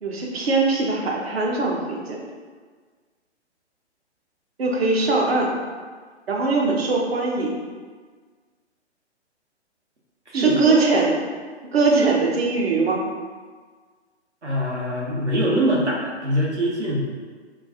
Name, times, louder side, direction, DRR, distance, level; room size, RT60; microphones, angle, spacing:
voice 1, 0.0-2.2 4.6-5.6 6.3-7.6 10.3-11.1 11.7-13.0, right 3 dB, 60° right, -1 dB, 1.0 m, -21 dB
voice 2, 10.3-10.8 11.9-12.1 14.4-17.0, equal, 80° right, -4 dB, 1.3 m, -23 dB
4.4 x 2.5 x 4.3 m, 1.5 s
figure-of-eight pair, 125°, 34 cm